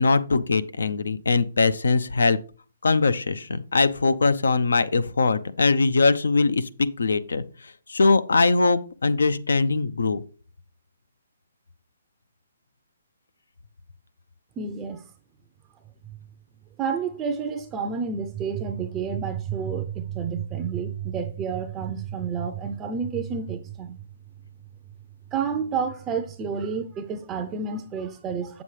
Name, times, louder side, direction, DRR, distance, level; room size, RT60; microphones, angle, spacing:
voice 1, 0.0-2.4 2.8-6.7 7.0-10.2, left 3 dB, 80° left, 0.6 m, -21 dB
voice 2, 14.6-15.1 16.8-24.0 25.3-28.6, right 6 dB, 20° right, 0.5 m, -30 dB
7.5 x 7.1 x 3.2 m
hypercardioid pair, 145°, 0 cm